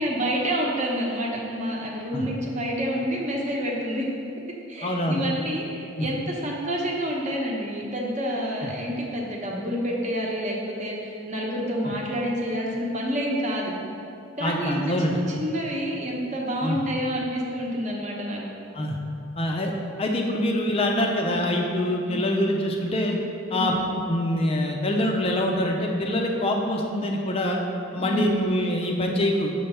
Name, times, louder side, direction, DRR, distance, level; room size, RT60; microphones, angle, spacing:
voice 1, 0.0-4.1 4.7-13.7 14.4-18.4 21.3-21.4 22.1-22.3 23.5-23.9 28.0-28.4, equal, 35° right, -2 dB, 0.9 m, -28 dB
voice 2, 4.8-5.2 6.0-6.1 8.6-8.7 11.9-12.0 14.4-15.2 16.6-16.8 18.7-19.0 19.4-19.7 20.0-23.2 23.5-23.8 24.1-27.6 27.9-29.5, left 1 dB, 30° left, 1 dB, 0.4 m, -25 dB
6.7 x 3.3 x 5.5 m, 2.7 s
head